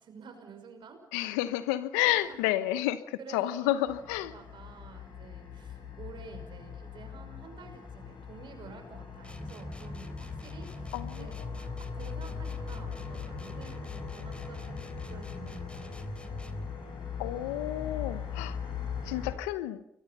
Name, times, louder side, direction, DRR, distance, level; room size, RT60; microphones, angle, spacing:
voice 1, 0.0-1.0 2.0-2.5 3.2-16.0, right 5 dB, 65° right, 6 dB, 6.0 m, -50 dB
voice 2, 1.1-4.3 10.9-11.3 17.2-18.6 19.0-19.8, left 14 dB, 90° left, 14 dB, 1.0 m, -30 dB
sound 1, 3.9-19.3, left 7 dB, 65° left, 7.3 m, -41 dB
sound 2, 9.2-16.7, left 1 dB, 15° left, 3.4 m, -42 dB
29.0 x 23.0 x 5.6 m, 0.74 s
hypercardioid pair, 40°, 9 cm